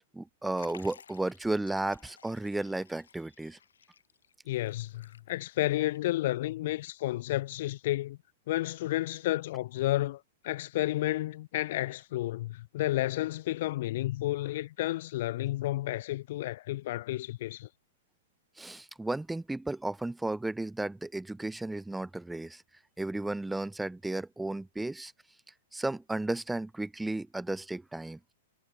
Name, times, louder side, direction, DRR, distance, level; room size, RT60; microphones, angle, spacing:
voice 1, 0.1-3.6 18.6-22.6 23.0-25.1 25.7-28.3, right 2 dB, 5° right, 0.8 m, -34 dB
Liquid, 0.6-5.7 5.9-6.0 7.0-7.1, left 7 dB, 85° left, 2.0 m, -56 dB
voice 2, 4.5-8.2 8.5-17.7, left 16 dB, 55° left, 0.5 m, -31 dB
hypercardioid pair, 130°, 0 cm